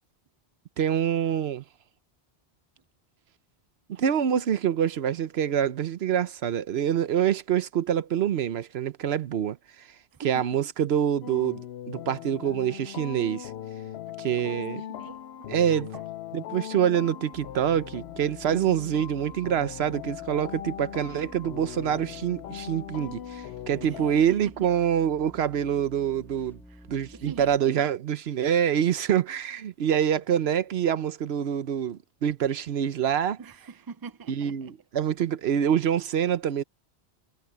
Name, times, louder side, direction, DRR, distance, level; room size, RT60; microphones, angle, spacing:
voice 1, 0.8-1.6 3.9-9.9 10.2-13.5 14.2-14.8 15.5-15.9 16.3-26.6 26.9-33.4 34.3-36.6, right 9 dB, 70° right, 1.0 m, -26 dB
sound 1, 11.2-24.1, left 11 dB, 75° left, 0.8 m, -40 dB
voice 2, 14.1-16.0 23.8-24.2 26.7-26.8 27.1-27.8 33.4-34.7, right 6 dB, 35° right, 0.4 m, -44 dB
sound 2, 17.3-27.6, equal, ahead, 1.8 m, -50 dB
omnidirectional pair, 1.1 m